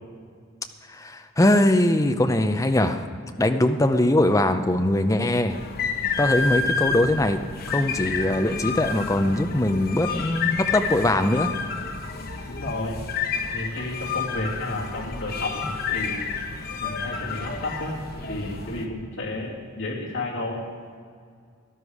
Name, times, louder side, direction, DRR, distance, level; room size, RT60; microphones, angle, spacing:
voice 1, 1.0-3.0 3.4-5.6 6.2-7.4 7.7-11.5, left 1 dB, 15° left, 7 dB, 0.6 m, -21 dB
sound 1, 5.5-18.9, left 5 dB, 45° left, 1.0 m, -30 dB
voice 2, 12.5-13.0 13.5-16.3 16.8-20.6, left 2 dB, 70° left, -4 dB, 2.8 m, -32 dB
13.0 x 11.0 x 4.9 m, 2.1 s
head